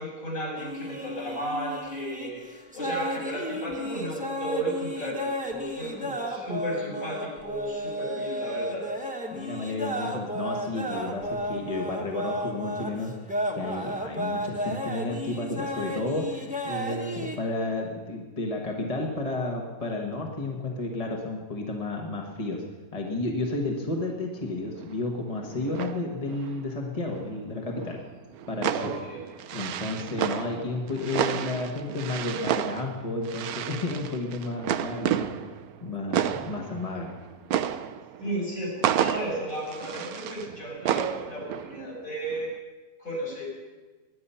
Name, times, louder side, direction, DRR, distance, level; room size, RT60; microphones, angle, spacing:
voice 1, 0.0-8.9 28.7-29.2 38.2-42.5 43.0-43.4, right 1 dB, 60° left, -4 dB, 6.8 m, -34 dB
sound 1, 0.6-17.4, equal, 5° right, 1.3 m, -33 dB
voice 2, 9.3-13.1 13.5-22.6 22.9-28.0 28.5-28.9 29.5-35.3 35.8-37.1, left 2 dB, 25° left, 0 dB, 1.4 m, -32 dB
sound 2, 24.4-24.5 24.7-27.4 27.7-42.0 42.2-42.5, right 10 dB, 75° right, 1.1 m, -32 dB
21.0 x 9.9 x 5.7 m, 1.3 s
omnidirectional pair, 1.6 m